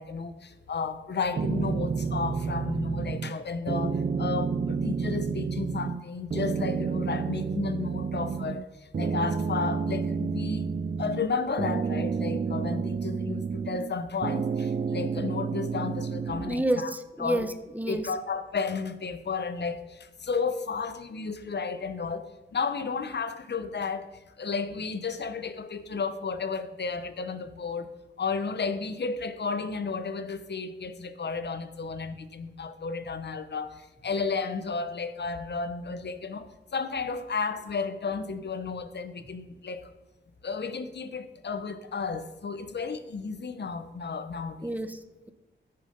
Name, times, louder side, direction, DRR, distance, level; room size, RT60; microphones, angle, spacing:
voice 1, 0.0-8.7 9.0-10.6 11.0-16.9 17.2-17.5 17.9-24.1 24.4-27.9 28.2-39.9 40.4-44.7, left 4 dB, 60° left, 11 dB, 1.0 m, -33 dB
sound 1, 1.3-3.4 3.7-6.0 6.3-8.6 8.9-11.3 11.6-13.9 14.2-16.5, right 5 dB, 40° right, 0.5 m, -30 dB
voice 2, 16.4-18.1 44.6-45.3, right 1 dB, 10° right, 11 dB, 0.8 m, -30 dB
14.0 x 6.8 x 5.3 m, 1.1 s
wide cardioid pair, 105°, 20 cm